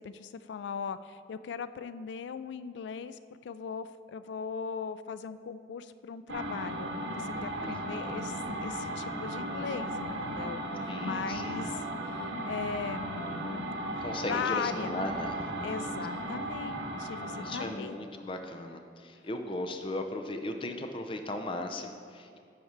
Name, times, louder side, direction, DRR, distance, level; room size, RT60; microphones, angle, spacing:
voice 1, 0.0-13.6 14.3-14.9 15.6-18.0, left 6 dB, 80° left, 13 dB, 0.3 m, -39 dB
sound 1, 6.3-17.8, right 1 dB, 80° right, 0.8 m, -36 dB
voice 2, 10.9-11.7 14.0-15.4 16.2-16.4 17.4-22.4, left 1 dB, 30° left, 5 dB, 0.5 m, -37 dB
10.5 x 4.2 x 4.6 m, 2.3 s
head